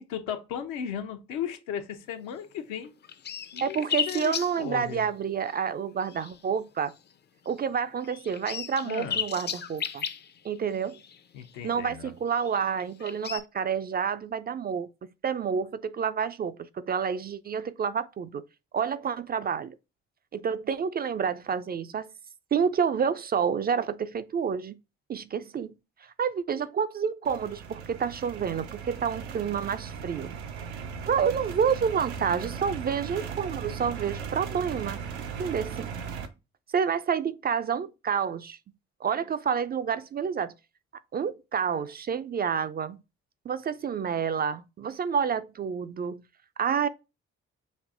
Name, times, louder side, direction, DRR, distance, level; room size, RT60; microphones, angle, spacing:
voice 1, 0.0-2.9 3.5-5.1 8.8-9.2 11.3-12.1, left 8 dB, 70° left, 0.8 m, -36 dB
sound 1, 2.6-2.7 2.8-5.1 5.4-5.6 6.0-6.5 6.9-7.1 7.5-7.6 8.0-11.7 12.3-13.4, left 8 dB, 35° left, 0.5 m, -35 dB
voice 2, 3.6-6.9 7.5-10.1 10.4-11.0 11.6-14.9 15.2-18.4 18.7-19.7 20.3-22.1 22.5-24.8 25.1-25.7 26.2-30.3 31.1-35.0 35.4-35.9 36.7-38.6 39.0-40.5 41.1-43.0 43.5-46.2 46.6-46.9, right 7 dB, 30° right, 0.4 m, -29 dB
sound 2, 27.2-36.3, right 6 dB, 85° right, 0.6 m, -37 dB
5.3 x 2.6 x 2.5 m
hypercardioid pair, 45°, 32 cm